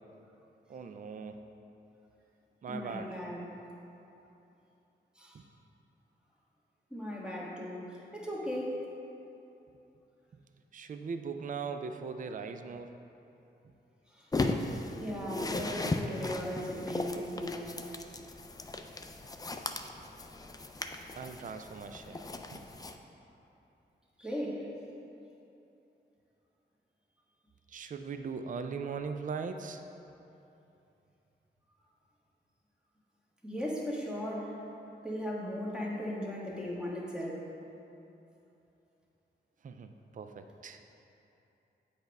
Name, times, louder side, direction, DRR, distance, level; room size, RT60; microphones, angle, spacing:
voice 1, 0.7-1.4 2.6-3.2 5.3-5.5 10.7-12.9 13.6-13.7 21.1-22.7 27.7-29.9 39.6-40.8, right 5 dB, 45° right, 7 dB, 0.4 m, -40 dB
voice 2, 2.7-3.4 5.1-5.4 6.9-8.8 14.1-14.3 14.9-17.8 24.2-24.6 33.4-34.6 35.0-37.5, equal, 5° right, -5 dB, 1.5 m, -37 dB
sound 1, 14.3-23.0, left 2 dB, 20° left, 0.4 m, -37 dB
7.9 x 3.4 x 5.3 m, 2.9 s
cardioid pair, 65°, 19 cm